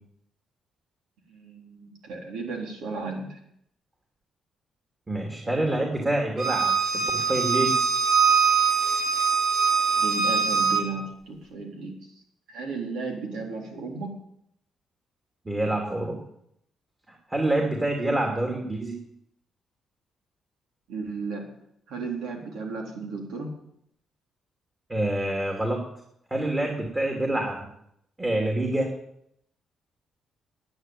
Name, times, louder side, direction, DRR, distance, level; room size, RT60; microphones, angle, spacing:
voice 1, 1.3-3.4 9.9-12.1 12.5-14.1 20.9-21.5 21.9-23.5, right 4 dB, 85° right, 1 dB, 3.8 m, -34 dB
voice 2, 5.1-6.7 7.1-7.8 15.5-16.2 17.3-18.9 24.9-25.8 26.3-27.6 28.2-28.9, right 1 dB, 20° right, 1 dB, 2.6 m, -26 dB
Bowed string instrument, 6.4-10.8, right 6 dB, 50° right, 3.0 m, -22 dB
10.5 x 8.8 x 9.5 m, 0.74 s
cardioid pair, 90°, 0 cm